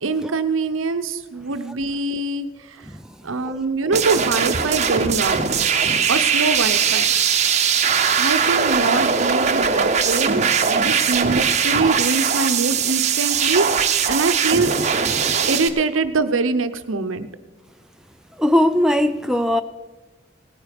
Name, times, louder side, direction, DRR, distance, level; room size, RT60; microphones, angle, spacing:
voice 1, 0.0-2.5 3.2-5.4 6.1-7.1 8.2-14.7 15.5-17.3, right 3 dB, 75° right, 0.8 m, -23 dB
sound 1, 3.9-15.7, right 6 dB, 35° right, 0.8 m, -20 dB
voice 2, 18.4-19.6, left 1 dB, 5° right, 0.3 m, -19 dB
17.5 x 9.1 x 5.2 m
head